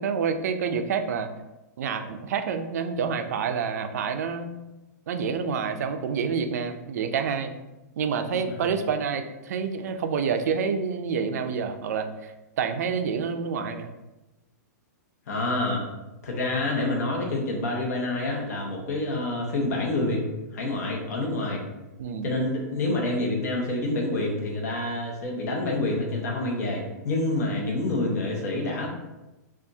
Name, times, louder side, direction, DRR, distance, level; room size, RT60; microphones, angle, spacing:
voice 1, 0.0-1.3 1.8-4.5 5.1-7.5 8.0-13.9 22.0-22.3, right 6 dB, 60° right, 7 dB, 0.5 m, -28 dB
voice 2, 15.3-15.8 16.2-20.2 20.5-21.6 22.2-28.9, left 2 dB, 60° left, -1 dB, 1.1 m, -27 dB
7.0 x 2.5 x 2.7 m, 1.0 s
hypercardioid pair, 165°, 10 cm